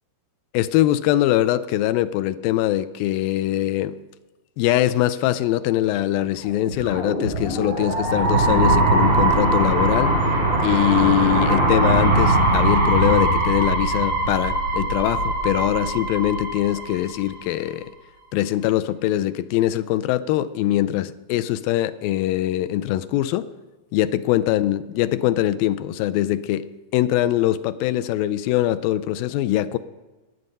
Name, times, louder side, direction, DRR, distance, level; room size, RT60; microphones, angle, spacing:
voice 1, 0.5-4.0 4.6-10.1 10.6-17.9 18.3-23.5 23.9-26.7 26.9-29.8, left 14 dB, 85° left, 12 dB, 2.3 m, -22 dB
sound 1, 6.5-17.4, right 2 dB, 40° right, 6.5 m, -21 dB
21.0 x 7.8 x 5.4 m, 1.2 s
omnidirectional pair, 4.0 m